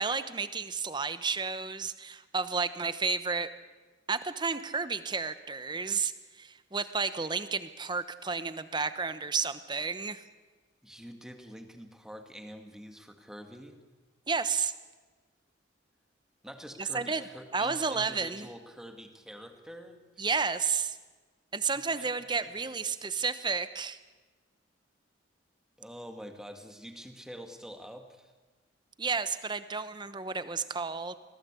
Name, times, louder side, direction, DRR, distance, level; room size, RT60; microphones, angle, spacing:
voice 1, 0.0-3.5 4.1-6.1 6.4-10.2 14.3-14.7 16.8-17.2 17.5-18.5 20.2-21.0 21.5-24.0 29.0-31.1, right 5 dB, 25° right, 12 dB, 1.0 m, -31 dB
voice 2, 10.8-13.8 16.4-20.0 21.7-23.1 25.8-28.3, equal, 5° right, 5 dB, 1.9 m, -47 dB
25.5 x 18.0 x 8.3 m, 1.3 s
head